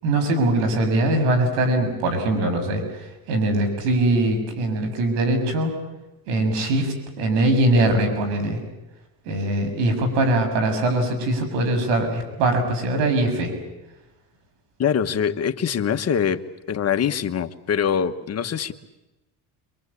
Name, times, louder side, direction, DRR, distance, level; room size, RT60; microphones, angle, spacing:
voice 1, 0.0-5.7 6.3-8.6 9.3-13.5, right 1 dB, 85° right, 6 dB, 7.0 m, -22 dB
voice 2, 14.8-16.4 16.7-18.7, left 8 dB, 35° left, 7 dB, 1.5 m, -23 dB
26.5 x 23.5 x 8.5 m, 1.0 s
cardioid pair, 110°, 42 cm